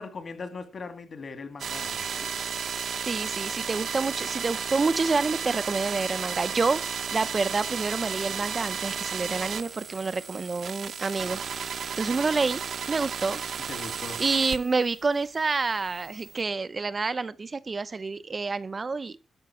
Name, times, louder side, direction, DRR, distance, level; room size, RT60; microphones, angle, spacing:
voice 1, 0.0-2.3 13.7-14.2, left 4 dB, 45° left, 2.2 m, -39 dB
sound 1, 1.6-15.0 15.4-16.4, right 6 dB, 60° right, 0.9 m, -33 dB
voice 2, 3.1-6.8 7.1-11.4 12.0-12.6 12.9-13.4 14.2-19.2, right 4 dB, 30° right, 0.6 m, -28 dB
12.5 x 5.3 x 8.6 m
wide cardioid pair, 145°, 0 cm